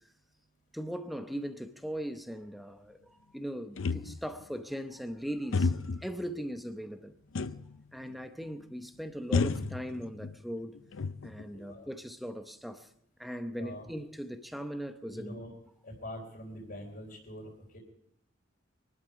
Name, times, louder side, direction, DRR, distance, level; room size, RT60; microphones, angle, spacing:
voice 1, 0.7-7.1 7.9-10.7 11.2-12.9 13.2-15.4, equal, ahead, 0.8 m, -39 dB
sound 1, 3.8-4.4 5.5-6.1 7.4-7.8 8.1-8.2 9.3-10.4 10.8-11.6, left 4 dB, 90° left, 0.5 m, -31 dB
voice 2, 11.5-11.9 13.5-13.9 15.1-15.5 15.8-17.8, left 1 dB, 55° left, 3.5 m, -44 dB
23.0 x 12.0 x 4.8 m
head